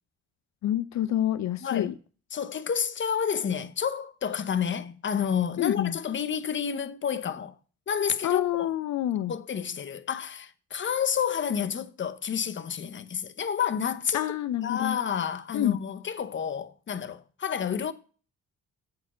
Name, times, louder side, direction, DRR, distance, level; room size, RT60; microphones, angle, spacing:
voice 1, 0.6-1.9 5.6-6.0 8.2-9.3 14.1-15.0 15.5-15.8, left 12 dB, 65° left, 0.6 m, -27 dB
voice 2, 1.6-1.9 2.3-7.5 7.9-8.7 9.3-14.2 14.6-17.9, left 7 dB, 40° left, 0.9 m, -30 dB
8.1 x 4.8 x 6.1 m
cardioid pair, 90°, 30 cm